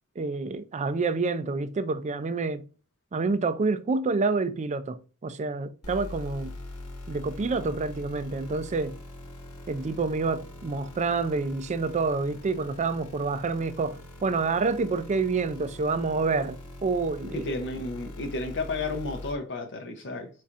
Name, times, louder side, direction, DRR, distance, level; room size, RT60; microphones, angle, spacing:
voice 1, 0.2-2.6 3.1-6.5 7.1-8.9 9.7-17.5, right 4 dB, 30° right, 0.4 m, -28 dB
sound 1, 5.8-19.3, left 1 dB, 80° left, 1.2 m, -43 dB
voice 2, 17.3-20.3, left 2 dB, 55° left, 0.6 m, -32 dB
4.5 x 4.1 x 2.4 m
head